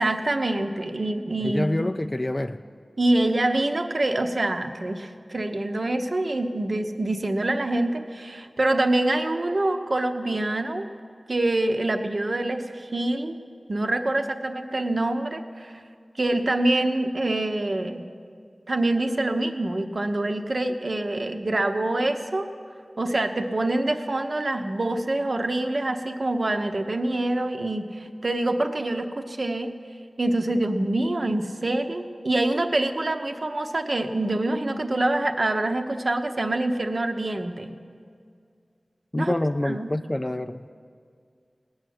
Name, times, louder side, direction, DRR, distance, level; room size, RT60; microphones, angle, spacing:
voice 1, 0.0-1.9 3.0-10.9 11.3-13.4 13.7-15.8 16.2-18.1 18.7-22.5 23.0-29.7 30.2-37.7 39.2-39.3 39.6-39.9, right 2 dB, 60° right, 6 dB, 0.9 m, -25 dB
voice 2, 1.4-2.6 39.1-40.6, left 1 dB, 35° left, 7 dB, 0.4 m, -26 dB
18.0 x 6.4 x 9.4 m, 2.2 s
wide cardioid pair, 45°, 0 cm